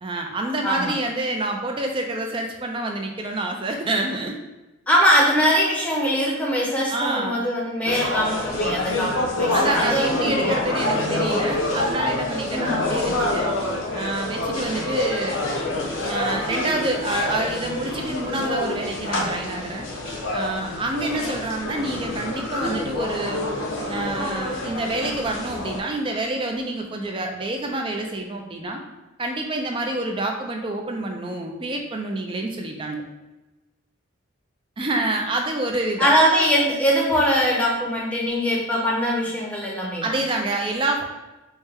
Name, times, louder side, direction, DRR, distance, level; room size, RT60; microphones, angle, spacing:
voice 1, 0.0-4.4 6.9-7.4 9.5-13.5 13.9-15.5 16.0-19.9 20.3-23.4 23.9-28.8 29.2-33.0 34.8-36.1 40.0-41.0, right 2 dB, 25° right, 2 dB, 0.4 m, -27 dB
voice 2, 4.9-10.6 12.5-12.8 36.0-40.2, equal, 5° left, -4 dB, 0.7 m, -22 dB
sound 1, 7.8-25.8, left 1 dB, 85° left, 0.7 m, -27 dB
4.7 x 2.2 x 3.4 m, 1.1 s
head